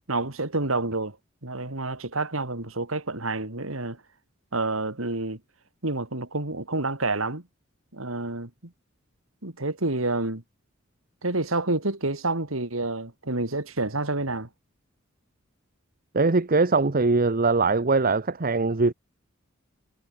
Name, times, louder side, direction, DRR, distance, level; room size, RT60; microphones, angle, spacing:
voice 1, 0.1-1.2 1.4-4.0 4.5-5.4 5.8-7.4 7.9-8.5 9.4-10.4 11.2-14.5, right 2 dB, 90° right, 3.3 m, -28 dB
voice 2, 16.1-18.9, right 3 dB, 45° right, 1.0 m, -21 dB
head